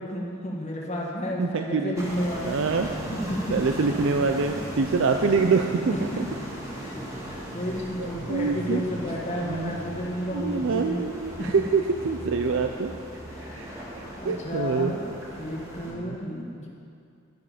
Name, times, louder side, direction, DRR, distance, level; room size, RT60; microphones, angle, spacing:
voice 1, 0.0-2.6 3.1-3.5 6.8-11.0 11.4-11.5 13.3-16.7, equal, 30° left, -3 dB, 1.6 m, -32 dB
voice 2, 1.4-2.0 2.5-2.9 3.5-6.1 8.0-8.9 9.4-9.8 10.3-12.9 13.5-13.7 14.2-14.9 15.9-16.2, right 4 dB, 60° right, 5 dB, 0.5 m, -25 dB
sound 1, 2.0-15.9, equal, 15° right, 1.9 m, -37 dB
11.0 x 10.5 x 5.0 m, 2.5 s
head